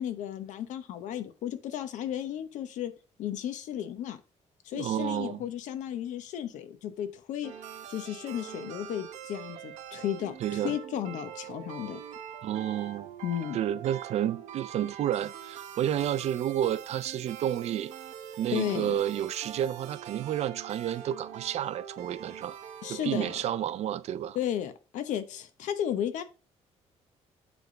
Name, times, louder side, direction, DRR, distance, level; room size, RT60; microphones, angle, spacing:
voice 1, 0.0-2.9 3.2-4.2 4.6-7.5 7.9-12.0 13.2-13.6 18.5-19.0 22.8-23.3 24.3-26.2, left 10 dB, 90° left, 0.9 m, -34 dB
voice 2, 4.7-5.4 10.4-10.7 12.4-13.1 13.5-17.9 18.4-22.6 22.9-24.4, right 11 dB, 60° right, 0.5 m, -30 dB
sound 1, 7.4-24.0, right 9 dB, 85° right, 1.0 m, -44 dB
8.0 x 3.5 x 5.0 m
cardioid pair, 145°, 12 cm